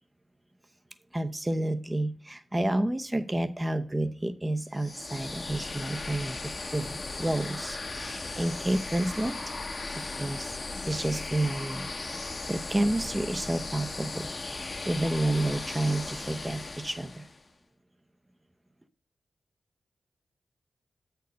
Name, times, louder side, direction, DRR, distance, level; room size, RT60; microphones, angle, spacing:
voice 1, 1.1-9.4 10.0-10.6 10.9-11.9 12.2-14.3 14.5-17.3, right 1 dB, 20° right, 8 dB, 0.7 m, -30 dB
sound 1, 4.7-17.4, left 3 dB, 40° left, 0.8 m, -37 dB
8.1 x 4.5 x 5.1 m, 0.38 s
cardioid pair, 50°, 0 cm